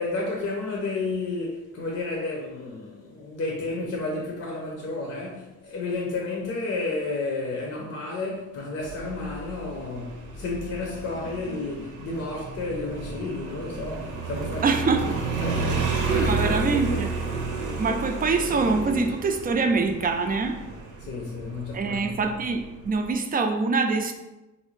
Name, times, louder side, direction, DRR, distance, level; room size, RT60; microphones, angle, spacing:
voice 1, 0.0-14.7 14.9-15.1 15.4-17.1 21.0-22.2, left 3 dB, 55° left, 0.7 m, -31 dB
Motorcycle, 8.8-23.1, right 4 dB, 90° right, 0.7 m, -32 dB
voice 2, 14.6-15.1 16.1-17.2 17.8-20.6 21.7-24.1, right 4 dB, 30° right, 0.4 m, -24 dB
3.1 x 2.7 x 3.1 m
cardioid pair, 90°, 30 cm